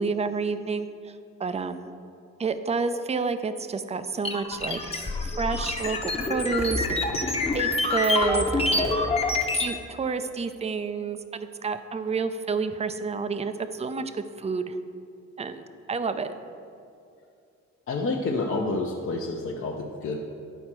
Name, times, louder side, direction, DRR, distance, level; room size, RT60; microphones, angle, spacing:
voice 1, 0.0-1.9 2.4-4.9 5.2-8.9 9.6-14.1 14.4-14.8 15.4-16.3, right 4 dB, 20° right, 10 dB, 0.5 m, -29 dB
sound 1, 4.2-9.7, left 2 dB, 20° left, 0.9 m, -26 dB
voice 2, 17.9-20.2, left 3 dB, 45° left, -1 dB, 0.8 m, -29 dB
10.0 x 4.3 x 6.0 m, 2.5 s
cardioid pair, 90°, 30 cm